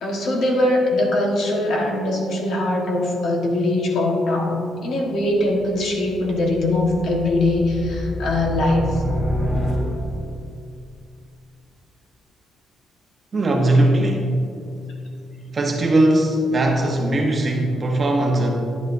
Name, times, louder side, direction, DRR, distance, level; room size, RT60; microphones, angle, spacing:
voice 1, 0.0-9.0, left 1 dB, 55° left, -1 dB, 1.5 m, -21 dB
sound 1, 5.3-10.3, equal, 40° left, 1.7 m, -28 dB
voice 2, 13.3-14.4 15.5-18.5, right 1 dB, 25° right, 1 dB, 0.9 m, -19 dB
11.5 x 10.5 x 2.7 m, 2.5 s
cardioid pair, 175°, 0 cm